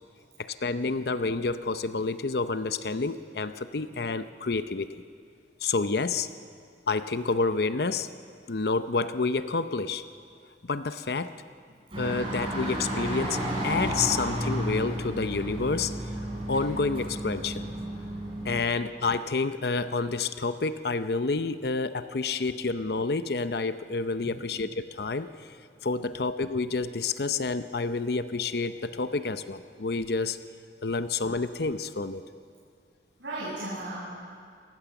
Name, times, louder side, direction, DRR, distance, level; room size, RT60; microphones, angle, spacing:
voice 1, 0.4-4.9 5.6-6.3 6.9-8.1 8.5-10.0 10.7-11.3 12.0-16.1 16.5-17.7 18.4-25.5 25.8-30.4 30.8-32.2, left 3 dB, 60° left, 11 dB, 0.7 m, -29 dB
sound 1, 11.9-18.6, right 1 dB, 30° right, 7.3 m, -32 dB
voice 2, 33.2-33.9, right 2 dB, 85° right, -9 dB, 7.9 m, -37 dB
27.5 x 19.0 x 7.1 m, 2.2 s
head